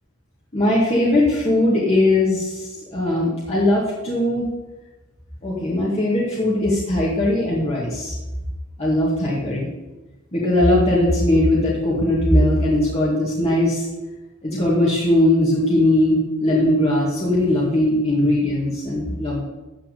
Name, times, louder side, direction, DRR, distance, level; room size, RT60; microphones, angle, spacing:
voice 1, 0.5-4.5 5.4-8.1 8.8-9.7 10.3-13.9 14.4-19.4, left 1 dB, 30° left, -6 dB, 2.3 m, -19 dB
13.0 x 4.5 x 8.5 m, 1.1 s
head